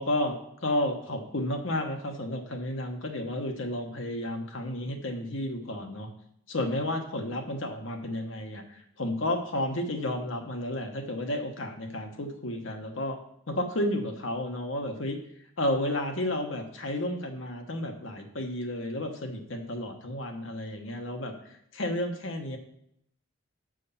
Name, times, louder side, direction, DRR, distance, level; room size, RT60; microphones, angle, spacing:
voice 1, 0.0-6.1 6.5-13.2 13.5-15.2 15.6-22.6, left 1 dB, 70° left, 3 dB, 1.2 m, -32 dB
6.3 x 5.4 x 7.1 m, 0.72 s
head